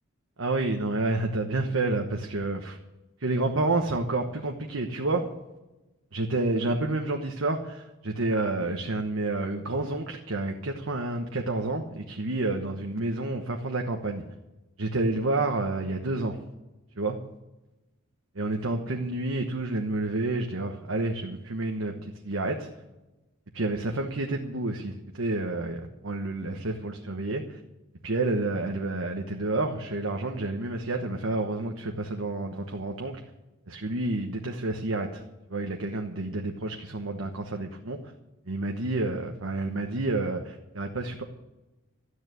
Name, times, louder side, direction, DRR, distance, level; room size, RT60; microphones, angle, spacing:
voice 1, 0.4-2.8 3.2-5.3 6.1-14.2 14.8-16.4 17.0-17.2 18.3-22.7 23.5-27.6 28.0-33.2 33.7-35.2 35.5-38.0 38.5-41.2, right 2 dB, 80° right, 3 dB, 1.2 m, -29 dB
13.0 x 9.6 x 9.1 m, 1.1 s
head